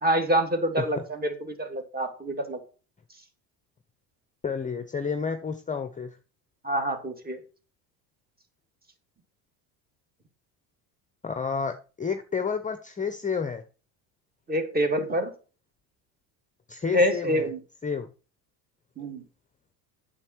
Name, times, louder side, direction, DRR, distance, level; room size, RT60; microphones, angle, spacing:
voice 1, 0.0-2.6 6.6-7.4 14.5-15.3 16.9-17.6 19.0-19.2, equal, 20° right, 6 dB, 2.4 m, -26 dB
voice 2, 4.4-6.2 11.2-13.6 16.7-17.5 17.8-18.1, left 5 dB, 15° left, 9 dB, 0.8 m, -30 dB
8.8 x 7.1 x 4.5 m, 0.35 s
hypercardioid pair, 75°, 46 cm